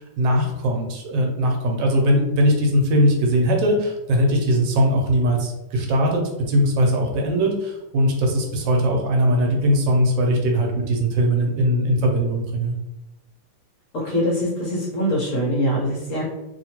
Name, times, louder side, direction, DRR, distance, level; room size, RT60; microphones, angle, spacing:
voice 1, 0.2-6.2 6.5-12.7, equal, 80° right, 1 dB, 1.3 m, -20 dB
voice 2, 13.9-16.2, equal, 55° left, -5 dB, 1.1 m, -23 dB
2.8 x 2.8 x 2.8 m, 0.98 s
omnidirectional pair, 2.0 m